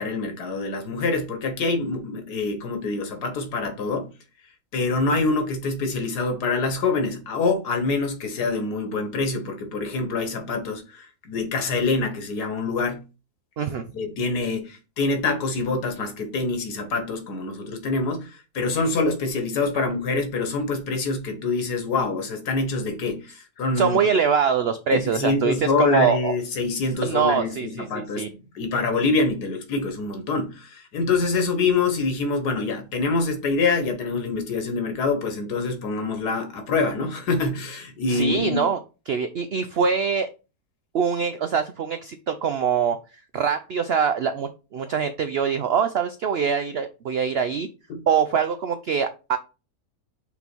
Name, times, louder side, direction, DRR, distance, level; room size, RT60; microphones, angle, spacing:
voice 1, 0.0-4.1 4.7-13.0 13.9-24.0 24.9-38.6 47.9-48.0, left 3 dB, 85° left, 1.8 m, -25 dB
voice 2, 23.8-26.4 27.0-28.3 38.1-38.8 39.1-40.3 40.9-43.0 43.3-47.7 48.1-49.4, right 6 dB, 85° right, 0.5 m, -23 dB
5.5 x 4.0 x 4.4 m
omnidirectional pair, 1.7 m